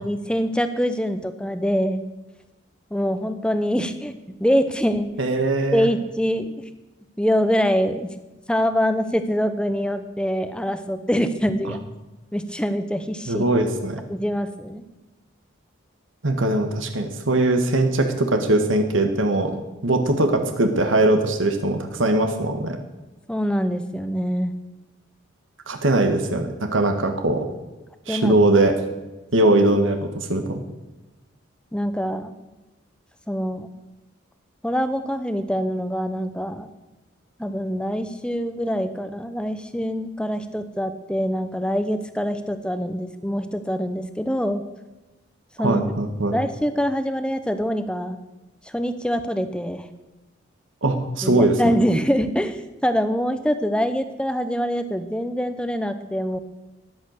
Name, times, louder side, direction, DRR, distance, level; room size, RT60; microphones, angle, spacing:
voice 1, 0.0-2.0 2.9-4.1 4.4-5.1 5.7-6.5 7.2-8.1 8.5-11.8 12.3-13.4 14.1-14.9 23.3-24.5 28.1-28.3 29.4-29.5 31.7-32.3 33.3-33.7 34.6-36.7 37.4-44.6 45.6-45.9 46.3-48.2 48.6-49.9 51.2-56.4, equal, 5° left, 10 dB, 0.8 m, -24 dB
voice 2, 5.2-5.9 13.3-14.0 16.2-19.5 19.8-22.8 25.7-27.5 28.1-28.8 29.3-30.6 45.6-46.4 50.8-51.7, right 2 dB, 80° right, 5 dB, 1.6 m, -21 dB
14.0 x 11.0 x 6.6 m, 1.1 s
head